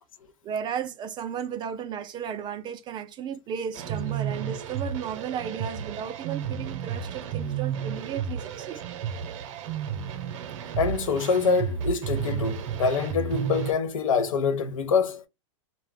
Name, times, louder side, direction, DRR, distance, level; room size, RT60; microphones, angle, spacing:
voice 1, 0.4-8.8, right 8 dB, 25° right, 0.4 m, -34 dB
sound 1, 3.8-13.7, right 8 dB, 65° right, 0.7 m, -32 dB
voice 2, 10.8-15.2, left 5 dB, 90° left, 0.7 m, -25 dB
2.4 x 2.2 x 3.4 m
hypercardioid pair, 125°, 17 cm